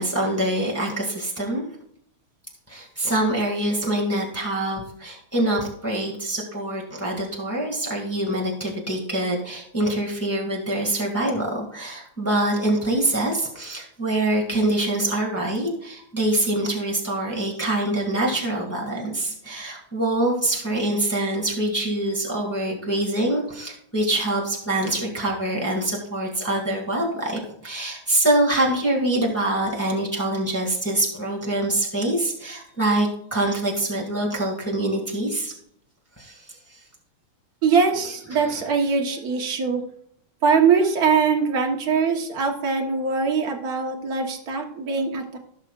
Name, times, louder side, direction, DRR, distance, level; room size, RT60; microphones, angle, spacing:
voice 1, 0.0-1.6 2.7-35.5 36.2-36.4 38.3-38.7, right 1 dB, 5° left, -2 dB, 1.8 m, -25 dB
voice 2, 37.6-39.8 40.4-45.4, right 5 dB, 50° right, 2 dB, 1.6 m, -22 dB
17.0 x 6.0 x 2.5 m, 0.69 s
omnidirectional pair, 2.4 m